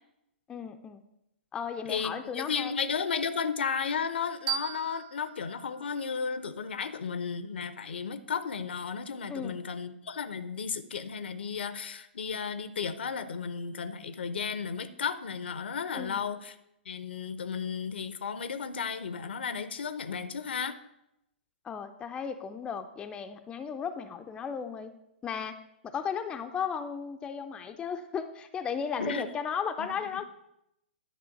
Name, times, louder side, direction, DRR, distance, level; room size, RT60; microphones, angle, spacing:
voice 1, 0.5-1.0 1.5-2.8 9.3-9.6 15.9-16.3 21.6-24.9 25.2-25.6 25.8-30.2, left 6 dB, 15° left, 7 dB, 0.4 m, -35 dB
voice 2, 1.9-16.5 16.9-20.8 29.0-29.3 29.8-29.9, left 6 dB, 65° left, 12 dB, 0.6 m, -34 dB
sound 1, 4.5-7.3, right 10 dB, 40° right, 0.9 m, -39 dB
10.5 x 3.6 x 5.9 m, 0.83 s
figure-of-eight pair, 115°, 6 cm